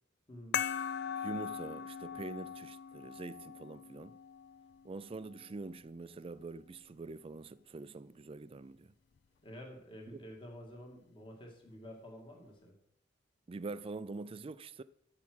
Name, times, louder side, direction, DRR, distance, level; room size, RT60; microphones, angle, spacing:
voice 1, 0.3-0.6 9.4-12.7, equal, 25° left, 2.1 m, -50 dB
sound 1, 0.5-5.6, left 8 dB, 60° left, 0.4 m, -40 dB
voice 2, 1.2-4.2 4.8-8.9 10.1-10.2 13.5-14.8, right 3 dB, 30° right, 0.4 m, -45 dB
13.0 x 4.8 x 6.3 m
head